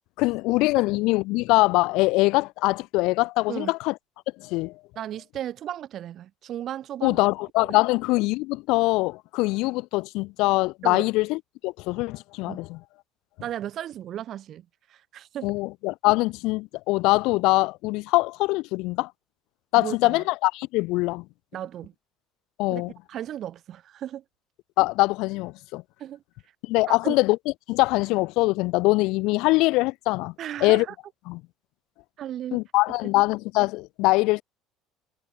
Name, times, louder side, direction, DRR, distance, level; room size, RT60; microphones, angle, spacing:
voice 1, 0.2-3.9 4.4-4.8 7.0-12.8 15.4-19.1 19.7-21.2 22.6-22.9 24.8-25.8 26.6-27.4 27.7-30.3 30.6-30.9 31.3-31.4 32.5-34.4, left 22 dB, 65° left, 0.9 m, -23 dB
voice 2, 5.0-7.2 10.8-11.1 12.5-12.6 13.4-15.5 19.8-20.2 21.5-21.9 22.7-22.8 23.1-24.2 26.0-26.2 26.9-27.1 30.4-30.9 32.2-32.6, right 11 dB, 40° right, 0.9 m, -35 dB
cardioid pair, 160°, 0 cm